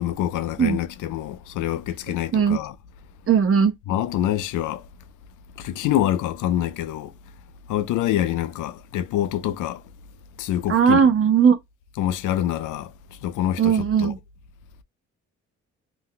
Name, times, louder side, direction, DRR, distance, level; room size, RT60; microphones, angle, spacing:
voice 1, 0.0-2.7 3.9-4.8 5.6-7.1 7.7-9.8 10.4-11.0 12.0-12.9 13.2-14.1, left 12 dB, 80° left, 0.5 m, -26 dB
voice 2, 3.3-3.7 10.7-11.6 13.6-14.2, right 7 dB, 45° right, 0.9 m, -18 dB
2.6 x 2.2 x 3.7 m
cardioid pair, 90°, 30 cm